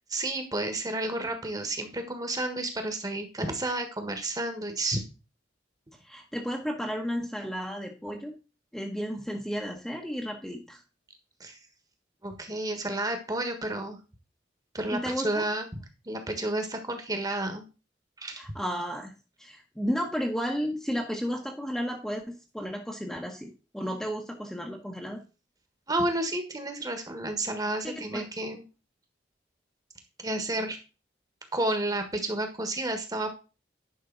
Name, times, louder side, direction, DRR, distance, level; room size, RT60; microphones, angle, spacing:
voice 1, 0.1-5.0 11.4-11.6 12.2-14.0 14.7-15.7 16.1-17.7 18.2-18.4 25.9-28.6 30.2-30.8 31.5-33.3, right 2 dB, 20° right, 7 dB, 1.5 m, -31 dB
voice 2, 6.0-8.3 8.7-10.8 14.9-15.5 18.4-19.1 19.4-25.2 27.8-28.2, equal, ahead, 0 dB, 1.1 m, -33 dB
10.5 x 5.5 x 4.0 m, 0.32 s
head